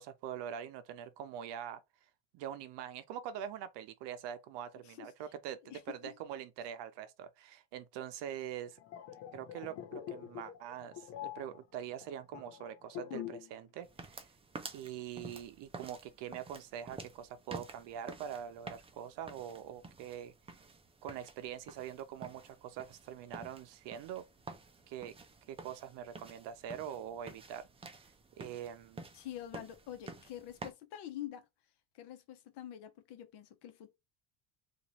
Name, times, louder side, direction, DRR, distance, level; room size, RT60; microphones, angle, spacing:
voice 1, 0.0-1.8 2.3-8.8 9.3-14.3 14.7-20.3 21.0-24.2 24.9-25.1 25.5-27.7 27.9-28.1 28.4-29.0, right 9 dB, 70° right, 0.6 m, -44 dB
voice 2, 5.6-6.1 29.1-31.4 31.9-33.9, left 12 dB, 65° left, 0.9 m, -46 dB
sound 1, 8.6-13.6 13.8-14.1, left 10 dB, 90° left, 1.0 m, -45 dB
sound 2, 13.8-30.7, right 3 dB, 15° right, 0.4 m, -51 dB
2.9 x 2.6 x 4.1 m
cardioid pair, 135°, 44 cm